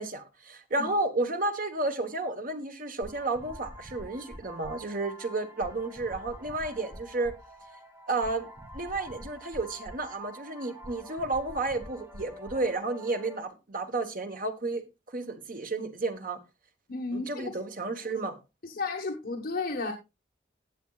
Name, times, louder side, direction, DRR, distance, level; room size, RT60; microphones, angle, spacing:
voice 1, 0.0-7.3 8.1-8.5 8.7-16.4 17.1-18.4, right 2 dB, 45° right, 1.3 m, -32 dB
sound 1, 3.0-13.4, equal, 10° right, 1.3 m, -46 dB
voice 2, 16.9-17.6 18.6-19.9, left 3 dB, 50° left, 1.3 m, -33 dB
18.0 x 7.0 x 2.4 m
head